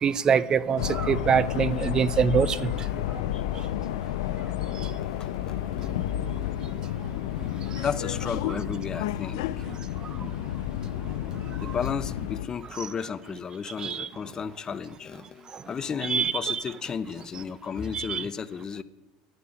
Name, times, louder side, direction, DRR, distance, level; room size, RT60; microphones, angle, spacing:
voice 1, 0.0-2.7 11.6-11.7 13.8-14.1 16.1-16.6 17.9-18.2, right 7 dB, 30° right, 0.7 m, -24 dB
sound 1, 0.8-12.5, left 12 dB, 85° left, 0.7 m, -31 dB
voice 2, 5.0-5.9 7.8-9.7 11.6-18.8, left 6 dB, 30° left, 0.8 m, -34 dB
11.5 x 10.5 x 10.0 m
supercardioid pair, 120°, 2 cm